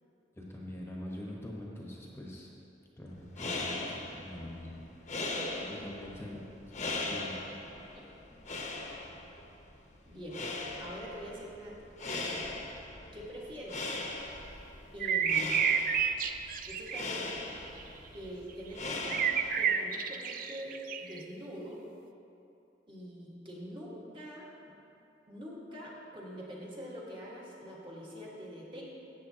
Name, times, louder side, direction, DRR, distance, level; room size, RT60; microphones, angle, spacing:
voice 1, 0.3-2.5 3.0-5.3 5.7-7.4, left 1 dB, 15° left, -3 dB, 1.0 m, -44 dB
sound 1, 3.1-19.8, left 2 dB, 40° left, 0.9 m, -40 dB
voice 2, 5.2-5.9 10.0-10.4 10.8-11.7 13.1-14.0 14.9-15.8 16.7-17.5 18.1-21.8 22.9-24.7 25.3-28.8, equal, 30° right, -5 dB, 1.6 m, -44 dB
sound 2, 15.0-17.0 17.7-17.8 19.1-21.2, right 7 dB, 50° right, 0.4 m, -30 dB
13.5 x 8.1 x 2.8 m, 2.8 s
head